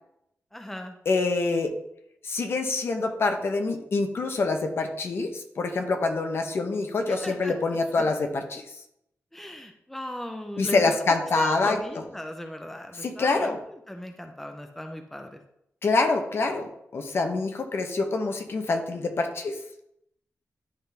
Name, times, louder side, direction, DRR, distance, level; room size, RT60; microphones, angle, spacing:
voice 1, 0.5-1.0 7.1-8.1 9.3-10.9 11.4-15.4, left 1 dB, 5° left, 4 dB, 0.7 m, -37 dB
voice 2, 1.1-1.7 2.2-8.6 10.6-11.8 13.0-13.6 15.8-19.6, left 3 dB, 55° left, 5 dB, 0.9 m, -26 dB
11.5 x 3.8 x 3.4 m, 0.78 s
wide cardioid pair, 145°, 5 cm